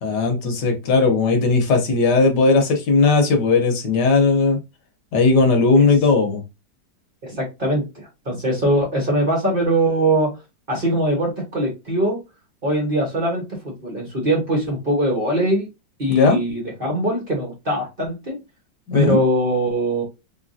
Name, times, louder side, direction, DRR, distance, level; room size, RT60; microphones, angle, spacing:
voice 1, 0.0-4.6 5.1-6.4 16.1-16.4 18.9-19.2, left 4 dB, 75° left, 1.5 m, -17 dB
voice 2, 7.2-10.3 10.7-12.2 12.6-15.7 16.0-18.4 18.9-20.0, right 1 dB, 35° right, 1.1 m, -22 dB
3.5 x 3.2 x 2.6 m
omnidirectional pair, 1.9 m